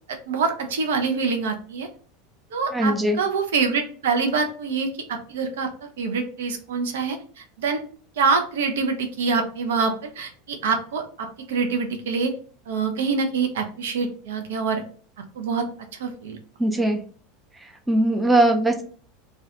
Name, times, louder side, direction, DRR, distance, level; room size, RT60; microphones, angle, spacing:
voice 1, 0.1-1.9 2.5-5.7 6.0-7.8 8.2-12.3 12.7-14.8 15.4-15.6 16.0-16.4, right 5 dB, 65° right, 4 dB, 0.4 m, -25 dB
voice 2, 2.7-3.2 16.6-17.0 17.9-18.8, right 1 dB, 5° right, 3 dB, 0.5 m, -20 dB
2.3 x 2.2 x 2.7 m, 0.43 s
figure-of-eight pair, 80°, 0 cm